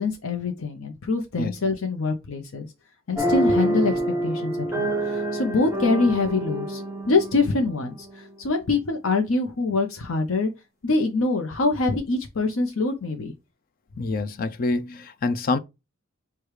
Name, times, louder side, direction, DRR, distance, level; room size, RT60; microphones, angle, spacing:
voice 1, 0.0-2.7 3.1-3.9 4.2-10.5 10.8-13.3, left 3 dB, 80° left, 0.7 m, -24 dB
sound 1, 3.2-8.6, right 1 dB, 15° right, 0.6 m, -27 dB
voice 2, 14.0-15.6, left 3 dB, 45° left, 0.4 m, -26 dB
4.8 x 2.3 x 4.7 m
head